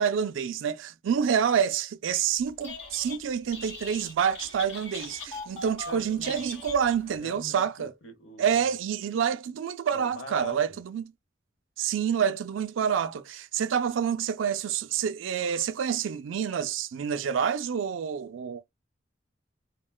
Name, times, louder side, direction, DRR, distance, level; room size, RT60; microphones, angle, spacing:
voice 1, 0.0-7.9 8.4-11.1 11.8-18.6, right 7 dB, 90° right, 0.4 m, -28 dB
Telephone, 2.5-3.2 3.5-7.2, left 3 dB, 35° left, 2.2 m, -41 dB
voice 2, 5.9-6.5 7.2-8.8 9.9-10.8, left 2 dB, 85° left, 0.8 m, -44 dB
3.6 x 2.2 x 2.2 m
head